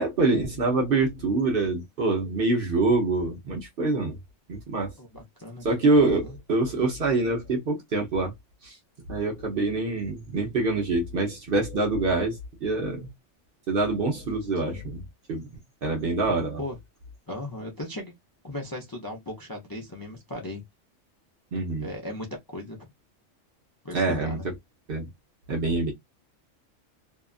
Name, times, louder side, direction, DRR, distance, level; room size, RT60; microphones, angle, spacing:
voice 1, 0.0-4.2 4.5-4.9 5.6-8.3 8.6-8.7 9.1-13.1 13.7-15.0 15.3-15.5 15.8-16.6 21.5-21.9 23.9-24.4 24.9-25.1 25.5-25.9, right 3 dB, 50° right, 0.8 m, -25 dB
voice 2, 5.0-5.7 6.2-6.4 14.6-14.9 16.3-16.8 17.3-18.1 18.4-20.6 21.8-22.9 23.8-24.5, left 1 dB, 25° left, 0.4 m, -37 dB
2.7 x 2.3 x 2.3 m
omnidirectional pair, 1.3 m